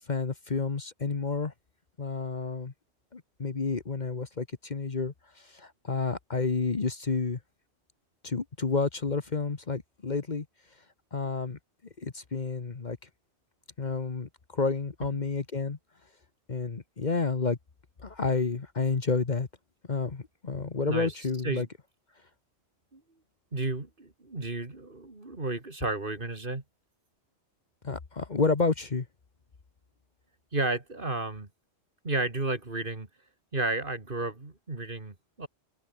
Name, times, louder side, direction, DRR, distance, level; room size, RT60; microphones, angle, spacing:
voice 1, 0.1-1.5 2.0-2.7 3.1-7.4 8.2-10.4 11.1-11.6 12.0-13.0 13.8-15.8 16.5-17.6 18.0-19.5 19.9-21.7 27.8-29.1, left 4 dB, 45° left, 1.3 m, -30 dB
voice 2, 15.0-15.3 20.9-21.1 21.4-21.7 22.9-23.0 23.5-26.6 30.5-31.5 32.0-33.1 33.5-35.5, right 2 dB, 50° right, 3.1 m, -32 dB
open air
omnidirectional pair, 1.1 m